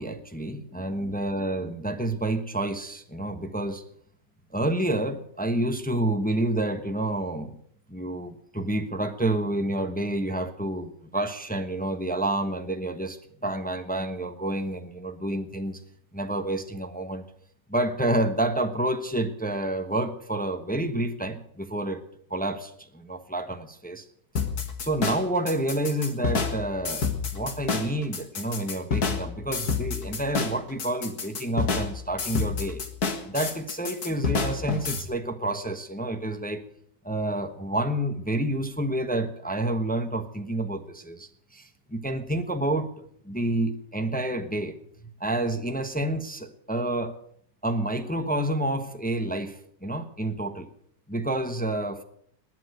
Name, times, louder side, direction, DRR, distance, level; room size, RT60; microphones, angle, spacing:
voice 1, 0.0-3.8 4.5-7.6 7.9-15.8 16.1-17.2 17.7-22.0 22.3-24.1 24.8-32.9 33.2-36.6 37.0-42.9 43.2-44.8 45.2-47.2 47.6-50.7 51.1-52.0, right 1 dB, 5° left, 7 dB, 0.8 m, -29 dB
sound 1, 24.4-35.0, left 5 dB, 65° left, 2.2 m, -29 dB
20.0 x 8.9 x 8.0 m, 0.67 s
omnidirectional pair, 1.8 m